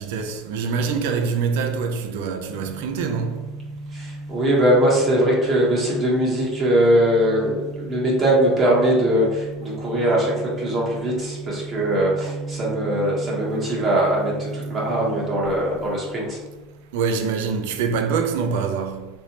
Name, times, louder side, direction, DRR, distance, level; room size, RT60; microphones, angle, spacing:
voice 1, 0.0-3.5 16.9-19.1, right 5 dB, 80° right, 0.4 m, -25 dB
sound 1, 2.4-16.9, right 2 dB, 15° left, 0.5 m, -35 dB
voice 2, 3.9-16.4, right 1 dB, 30° right, 0.8 m, -21 dB
3.1 x 2.6 x 2.8 m
supercardioid pair, 135°, 0 cm